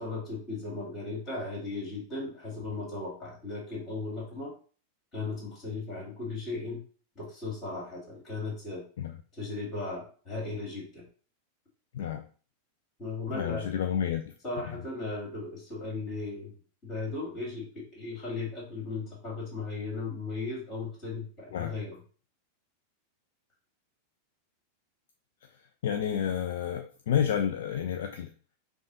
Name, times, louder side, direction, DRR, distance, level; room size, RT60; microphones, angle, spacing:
voice 1, 0.0-4.5 5.1-6.8 7.2-8.8 9.4-11.1 13.0-13.7 14.4-16.5 16.8-22.0, left 3 dB, 30° left, -1 dB, 2.2 m, -36 dB
voice 2, 13.3-14.2 14.6-14.8 21.5-21.7 25.4-25.5 25.8-28.3, left 9 dB, 55° left, 5 dB, 0.4 m, -30 dB
5.3 x 2.3 x 3.8 m, 0.40 s
figure-of-eight pair, 90°, 0 cm